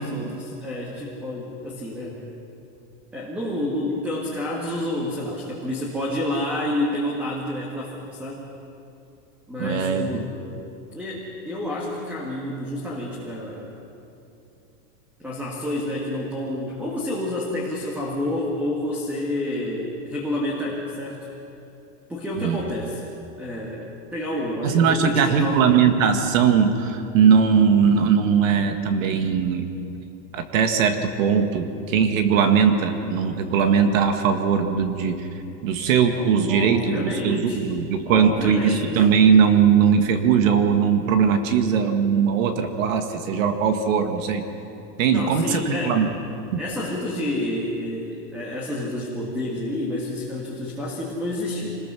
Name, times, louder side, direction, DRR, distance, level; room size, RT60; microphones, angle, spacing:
voice 1, 0.0-2.2 3.1-8.5 9.5-10.3 10.9-13.7 15.2-21.3 22.1-23.0 23.4-23.8 24.1-25.7 36.1-37.6 38.1-39.0 45.1-46.0 46.6-51.8, left 1 dB, 5° right, -3 dB, 1.7 m, -29 dB
voice 2, 9.6-10.3 22.4-22.6 24.6-29.7 30.3-35.3 35.6-44.4 45.0-46.1 46.5-46.6, right 6 dB, 55° right, 7 dB, 1.9 m, -20 dB
26.5 x 20.5 x 6.3 m, 2.8 s
supercardioid pair, 170°, 47 cm